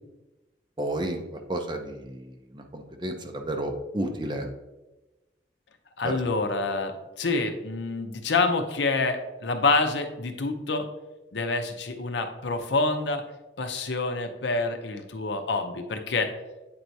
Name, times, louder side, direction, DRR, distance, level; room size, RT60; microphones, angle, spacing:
voice 1, 0.8-4.5 6.0-6.1, right 1 dB, 25° right, 4 dB, 0.6 m, -32 dB
voice 2, 6.0-10.9 11.3-13.2 13.6-16.3, left 3 dB, 75° left, 6 dB, 0.7 m, -27 dB
8.4 x 4.5 x 2.7 m, 1.1 s
head